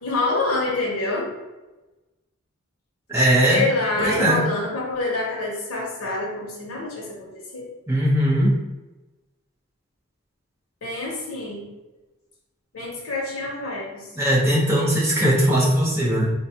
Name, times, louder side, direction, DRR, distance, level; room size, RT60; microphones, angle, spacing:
voice 1, 0.0-1.3 3.3-7.3 7.5-7.7 10.8-11.7 12.7-14.1, left 2 dB, 85° left, -3 dB, 0.7 m, -26 dB
voice 2, 3.1-3.7 4.0-4.4 7.9-8.5 14.2-16.3, right 1 dB, 10° right, -6 dB, 0.7 m, -19 dB
3.8 x 2.2 x 2.8 m, 1.1 s
head